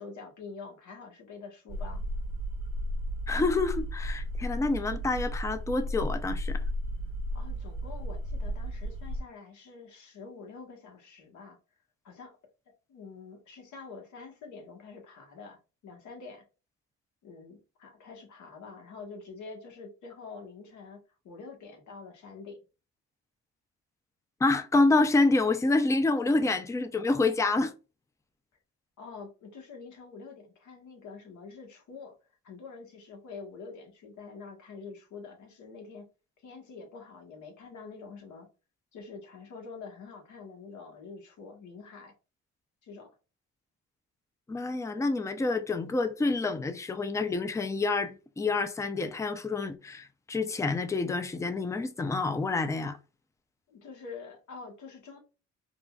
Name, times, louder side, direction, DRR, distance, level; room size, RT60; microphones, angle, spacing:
voice 1, 0.0-2.0 7.3-11.6 12.0-12.4 12.9-16.4 17.2-22.6 29.0-32.2 32.4-36.1 36.4-38.5 38.9-42.1 42.8-43.2 53.7-55.2, left 4 dB, 75° left, 1.2 m, -46 dB
sound 1, 1.7-9.2, equal, 75° right, 0.7 m, -34 dB
voice 2, 3.3-6.6 24.4-27.7 44.5-53.0, left 3 dB, 10° left, 0.3 m, -27 dB
3.7 x 2.2 x 2.3 m
cardioid pair, 90°, 30 cm